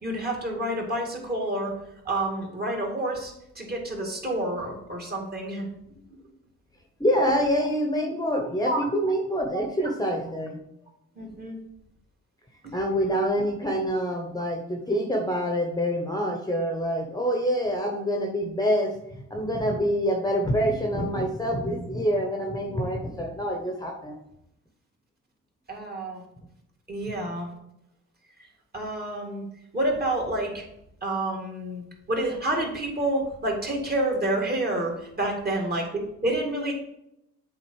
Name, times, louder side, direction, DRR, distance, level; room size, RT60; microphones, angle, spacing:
voice 1, 0.0-1.7 2.0-5.7 8.6-8.8 9.5-9.7 11.2-11.6 12.6-12.7 25.7-26.2 26.9-27.5 28.7-29.5 29.7-30.6 31.0-36.7, right 1 dB, 30° right, 0 dB, 2.3 m, -29 dB
voice 2, 7.0-10.6 12.7-24.1, equal, 15° left, 2 dB, 1.1 m, -26 dB
7.6 x 3.8 x 4.8 m, 0.82 s
cardioid pair, 90°, 30 cm